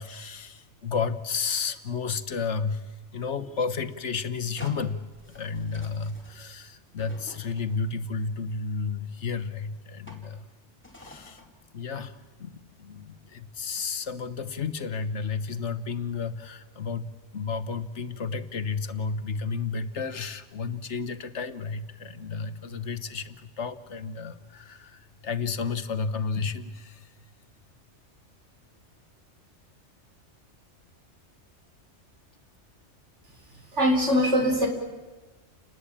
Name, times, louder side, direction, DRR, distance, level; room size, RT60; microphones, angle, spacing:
voice 1, 0.0-2.8 3.1-5.0 5.3-10.5 11.0-11.4 11.7-27.1, left 5 dB, 75° left, 12 dB, 1.6 m, -32 dB
sound 1, 4.5-8.0 8.9-9.0 10.1-10.3 10.8-11.5, left 1 dB, 10° left, 4.5 m, -48 dB
voice 2, 33.5-34.7, equal, 80° right, 4 dB, 4.5 m, -23 dB
29.5 x 20.0 x 8.9 m, 1.3 s
omnidirectional pair, 1.2 m